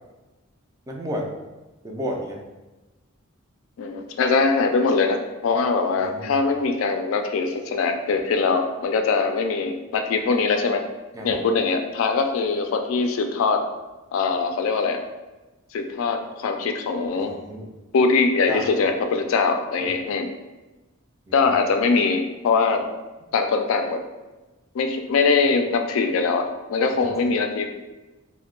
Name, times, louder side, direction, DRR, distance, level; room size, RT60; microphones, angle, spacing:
voice 1, 0.9-1.3 1.8-2.4 6.0-6.3 11.1-11.4 17.2-17.7 18.5-18.6 19.8-19.9 21.3-21.5, equal, 15° right, 0 dB, 0.3 m, -32 dB
voice 2, 3.8-10.8 11.2-13.6 14.1-15.0 15.7-17.3 17.9-20.3 21.3-22.8 23.3-24.0 24.7-27.7, left 4 dB, 70° left, 5 dB, 0.3 m, -22 dB
2.6 x 2.1 x 3.7 m, 1.1 s
head